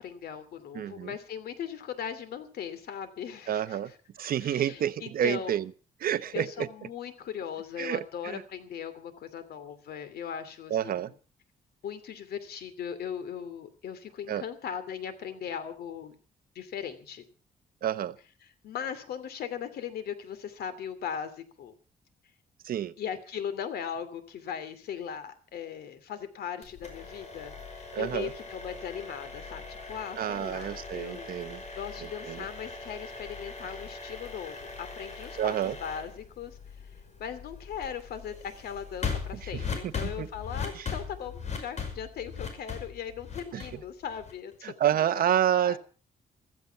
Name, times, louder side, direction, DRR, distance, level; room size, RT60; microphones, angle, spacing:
voice 1, 0.0-4.0 4.4-5.6 6.3-11.1 11.8-16.2 16.5-17.2 18.4-21.7 23.0-31.3 31.7-36.9 37.2-45.1 45.6-45.8, left 8 dB, 90° left, 12 dB, 2.7 m, -39 dB
voice 2, 0.7-1.1 3.5-3.9 4.2-5.6 6.0-6.7 7.8-8.4 10.7-11.1 14.3-14.4 17.8-18.1 22.6-22.9 27.9-28.3 30.2-31.6 32.2-32.4 35.4-35.8 39.5-39.6 40.0-40.3 40.7-40.9 43.5-43.6 44.6-45.8, right 10 dB, 70° right, 13 dB, 1.0 m, -29 dB
sound 1, 26.6-44.5, left 5 dB, 45° left, 5.6 m, -40 dB
15.0 x 14.5 x 5.7 m, 0.38 s
cardioid pair, 125°, 16 cm